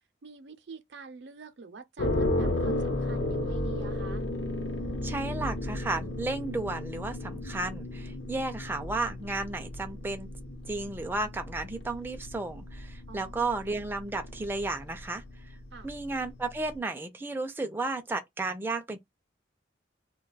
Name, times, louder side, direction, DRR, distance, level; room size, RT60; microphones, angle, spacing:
voice 1, 0.2-4.2 13.1-13.5 15.7-15.9, right 4 dB, 70° right, 0.6 m, -47 dB
sound 1, 2.0-16.8, left 1 dB, 70° left, 0.7 m, -34 dB
voice 2, 5.0-10.3 10.7-15.2 15.8-19.0, right 2 dB, 10° right, 0.3 m, -33 dB
2.3 x 2.2 x 3.9 m
head